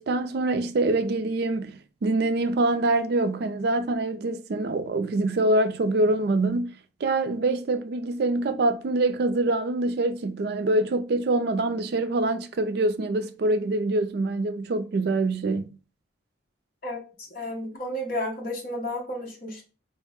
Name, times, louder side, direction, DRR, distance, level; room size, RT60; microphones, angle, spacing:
voice 1, 0.0-6.7 7.0-15.7, right 2 dB, 55° right, 0.4 m, -25 dB
voice 2, 16.8-19.6, left 1 dB, 45° left, 0.9 m, -32 dB
4.6 x 2.1 x 3.5 m
head